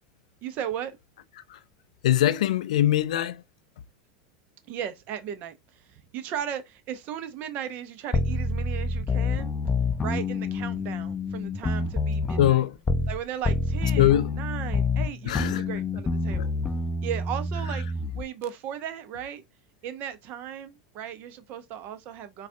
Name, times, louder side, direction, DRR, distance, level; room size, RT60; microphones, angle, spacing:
voice 1, 0.4-1.0 4.7-9.5 10.0-12.6 13.1-16.5 17.0-17.9 18.1-19.4 19.8-22.5, right 9 dB, 50° right, 0.7 m, -36 dB
voice 2, 2.0-3.4 12.4-12.8 14.0-14.4 15.2-15.7 16.4-16.5, left 13 dB, 80° left, 0.4 m, -22 dB
sound 1, 8.1-13.2 13.4-18.2, left 3 dB, 20° left, 0.5 m, -27 dB
4.0 x 2.3 x 2.6 m
hypercardioid pair, 110°, 4 cm